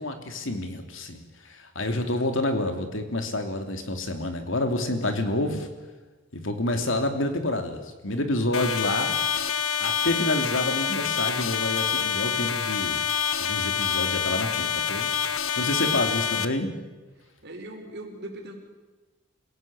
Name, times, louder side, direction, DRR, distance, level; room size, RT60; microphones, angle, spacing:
voice 1, 0.0-5.7 6.3-9.2 9.8-13.1 13.4-15.1 15.6-16.7, left 1 dB, 65° left, 6 dB, 3.2 m, -28 dB
sound 1, 8.5-16.5, left 7 dB, 80° left, 1.4 m, -27 dB
voice 2, 15.7-16.0 17.2-18.5, right 1 dB, 55° right, 1 dB, 5.3 m, -41 dB
27.5 x 17.0 x 8.9 m, 1.2 s
head